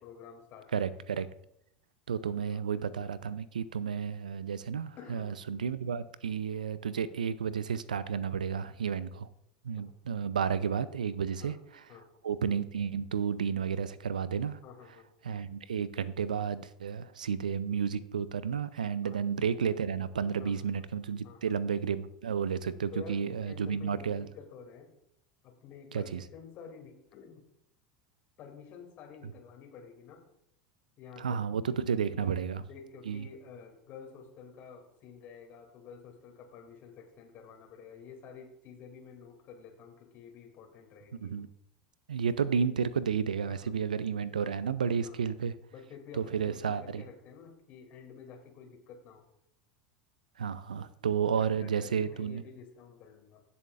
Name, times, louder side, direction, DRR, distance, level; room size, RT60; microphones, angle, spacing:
voice 1, 0.0-1.1 2.5-2.7 5.0-5.3 11.4-11.6 11.9-12.1 14.6-15.1 19.0-19.2 20.4-20.7 21.2-21.5 22.9-24.9 25.4-27.5 28.4-30.3 31.0-31.4 32.1-41.3 43.4-43.8 45.0-45.2 45.7-49.3 50.7-50.9 51.4-53.4, left 6 dB, 45° left, 3 dB, 2.5 m, -50 dB
voice 2, 0.7-1.3 2.1-9.3 9.6-11.8 12.2-14.6 15.2-24.3 25.9-26.2 31.2-32.6 33.1-33.2 41.2-41.5 42.1-45.5 46.2-47.0 50.4-52.4, right 7 dB, 75° right, 17 dB, 0.5 m, -32 dB
18.0 x 6.9 x 2.5 m, 0.79 s
figure-of-eight pair, 80°, 4 cm